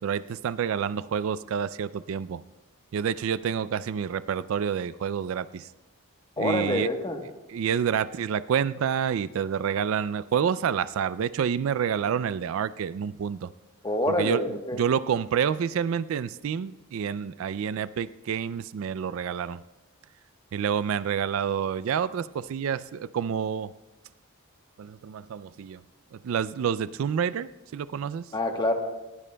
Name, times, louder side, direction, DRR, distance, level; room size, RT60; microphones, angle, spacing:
voice 1, 0.0-2.4 2.9-5.7 6.4-6.9 7.5-13.5 14.1-19.6 20.5-23.7 24.8-25.8 26.1-28.3, right 7 dB, 65° right, 16 dB, 0.3 m, -28 dB
voice 2, 6.4-7.2 13.8-14.8 28.3-28.7, left 1 dB, 20° left, 4 dB, 1.1 m, -26 dB
19.5 x 16.0 x 2.2 m, 1.1 s
head